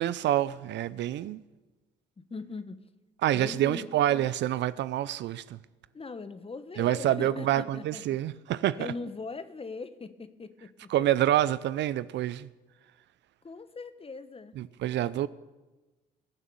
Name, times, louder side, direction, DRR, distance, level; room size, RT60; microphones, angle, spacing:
voice 1, 0.0-1.4 3.2-5.6 6.8-8.9 10.9-12.5 14.6-15.3, right 12 dB, 60° right, 0.5 m, -27 dB
voice 2, 2.2-2.9 3.3-3.9 5.9-8.2 8.8-10.7 13.4-14.6, left 4 dB, 30° left, 1.2 m, -40 dB
21.0 x 7.3 x 6.9 m
hypercardioid pair, 55°, 20 cm